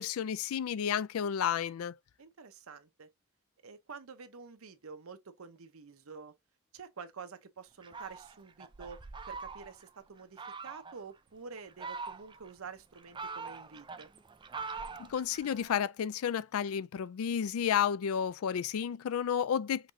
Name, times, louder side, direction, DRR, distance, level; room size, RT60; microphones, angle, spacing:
voice 1, 0.0-1.9 15.0-19.9, left 8 dB, 85° left, 0.4 m, -31 dB
voice 2, 2.2-3.1 3.6-6.3 6.7-9.0 9.3-14.1, right 5 dB, 90° right, 0.8 m, -48 dB
Fowl, 7.8-9.9 10.4-11.0 11.6-12.5 12.9-15.7, right 4 dB, 20° right, 0.4 m, -43 dB
5.8 x 3.1 x 2.6 m
head